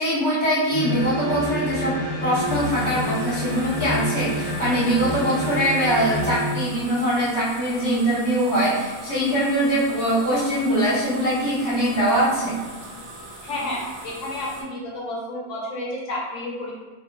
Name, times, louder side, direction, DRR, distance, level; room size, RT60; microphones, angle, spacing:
voice 1, 0.0-12.6, equal, 25° right, -11 dB, 0.4 m, -22 dB
sound 1, 0.7-6.6, equal, 35° left, 1.0 m, -28 dB
sound 2, 2.4-14.6, right 2 dB, 60° right, 0.7 m, -41 dB
voice 2, 13.4-16.8, left 1 dB, 65° left, -3 dB, 0.9 m, -31 dB
2.8 x 2.8 x 2.4 m, 1.4 s
omnidirectional pair, 1.5 m